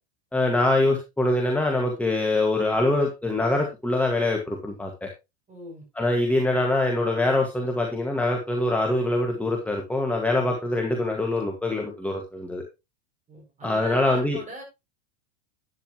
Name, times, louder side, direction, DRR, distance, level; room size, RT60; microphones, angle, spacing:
voice 1, 0.3-5.1 6.0-12.6 13.6-14.4, left 2 dB, 5° left, 1 dB, 1.9 m, -24 dB
voice 2, 5.5-5.9 13.3-14.6, right 2 dB, 20° right, 1 dB, 6.9 m, -40 dB
11.5 x 10.0 x 3.1 m, 0.25 s
supercardioid pair, 130°, 36 cm